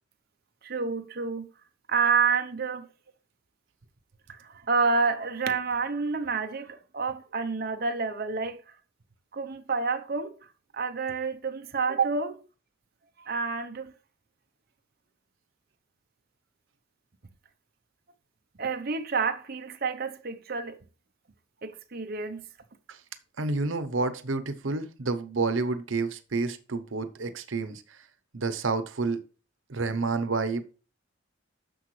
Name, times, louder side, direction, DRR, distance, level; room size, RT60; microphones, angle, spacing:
voice 1, 0.6-1.5 1.9-2.9 4.4-8.6 9.3-10.3 10.7-12.4 13.3-13.9 18.6-20.8 21.6-22.4, right 4 dB, 50° right, 0.8 m, -28 dB
voice 2, 23.4-28.0 28.3-29.2 29.7-30.6, right 3 dB, 90° right, 0.9 m, -29 dB
10.0 x 6.9 x 3.2 m
head